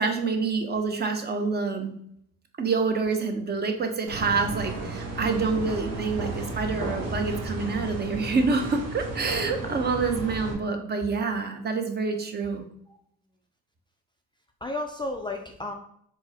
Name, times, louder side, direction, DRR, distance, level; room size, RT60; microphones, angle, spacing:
voice 1, 0.0-1.9 2.6-12.7, right 4 dB, 35° right, 5 dB, 0.6 m, -27 dB
sound 1, 4.1-10.5, right 2 dB, 55° right, 1.0 m, -34 dB
voice 2, 14.6-15.7, left 2 dB, 15° left, 2 dB, 0.4 m, -34 dB
4.4 x 2.1 x 2.7 m, 0.69 s
supercardioid pair, 75°, 30 cm